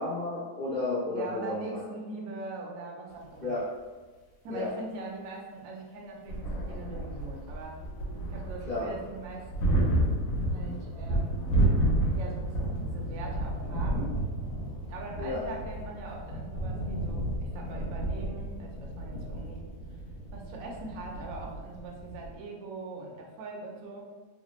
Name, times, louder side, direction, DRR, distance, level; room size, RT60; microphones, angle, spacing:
voice 1, 0.0-1.8 3.4-3.6 4.5-4.7 8.7-8.9 15.2-15.4, left 2 dB, 45° left, -10 dB, 0.7 m, -32 dB
voice 2, 1.1-3.6 4.4-7.8 8.3-9.8 10.5-11.5 12.2-14.2 14.9-20.0 20.3-24.0, right 3 dB, 70° right, 0 dB, 1.0 m, -42 dB
sound 1, 6.3-22.3, right 1 dB, 65° left, 1.1 m, -31 dB
3.1 x 2.1 x 3.0 m, 1.3 s
omnidirectional pair, 1.6 m